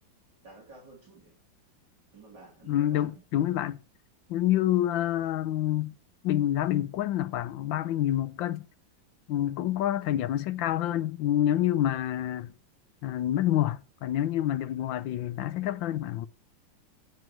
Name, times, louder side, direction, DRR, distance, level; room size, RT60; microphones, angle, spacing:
voice 1, 0.4-1.4 2.1-3.2 4.5-4.8, right 3 dB, 60° right, 4.1 m, -52 dB
voice 2, 2.7-3.8 4.3-5.9 6.2-8.6 9.3-12.5 13.0-16.3, left 12 dB, 85° left, 1.5 m, -27 dB
9.3 x 7.6 x 6.2 m
omnidirectional pair, 2.1 m